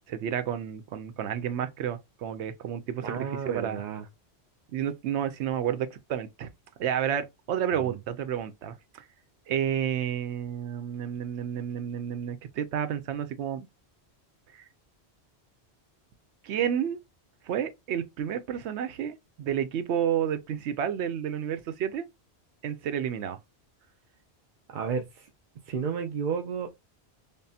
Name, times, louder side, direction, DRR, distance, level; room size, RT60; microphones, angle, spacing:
voice 1, 0.1-3.8 4.7-6.5 6.8-9.0 9.5-13.7 14.5-14.7 16.4-17.0 17.4-22.0 22.6-23.4, right 9 dB, 85° right, 0.9 m, -31 dB
voice 2, 3.0-4.1 7.8-8.0 24.7-25.3 25.7-26.7, right 6 dB, 60° right, 0.6 m, -32 dB
5.3 x 2.0 x 2.7 m
omnidirectional pair, 1.1 m